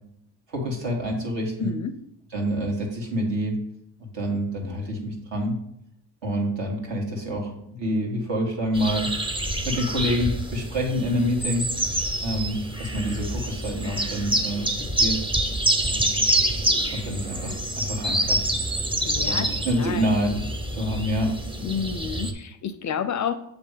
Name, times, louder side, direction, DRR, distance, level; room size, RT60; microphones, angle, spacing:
voice 1, 0.5-1.7 2.3-3.6 4.0-5.5 6.2-7.5 7.8-9.1 9.6-11.7 12.2-14.7 15.0-15.2 15.8-16.2 16.9-18.4 19.1-21.3, equal, 65° right, 0 dB, 2.0 m, -27 dB
voice 2, 1.6-2.0 19.0-20.1 21.6-23.3, left 8 dB, 40° left, 11 dB, 0.4 m, -30 dB
sound 1, 8.7-22.3, right 1 dB, 10° right, 0.7 m, -27 dB
7.0 x 3.3 x 5.1 m, 0.77 s
supercardioid pair, 75°, 47 cm